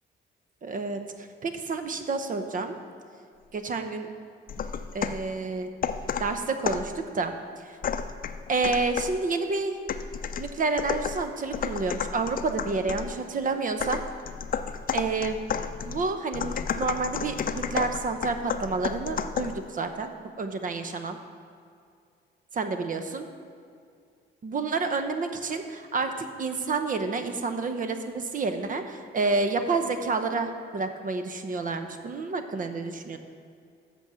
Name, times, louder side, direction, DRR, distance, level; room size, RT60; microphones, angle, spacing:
voice 1, 0.6-2.8 3.5-4.1 4.9-5.7 6.2-7.3 7.7-7.8 8.5-9.8 10.4-14.0 14.9-15.4 15.9-21.2 22.6-23.3 24.4-33.2, right 3 dB, 40° right, 7 dB, 0.8 m, -29 dB
sound 1, 4.5-5.3 5.8-7.0 7.8-9.2 9.9-13.1 13.8-19.6, left 7 dB, 45° left, 0.5 m, -32 dB
8.0 x 6.3 x 6.8 m, 2.3 s
cardioid pair, 90°, 20 cm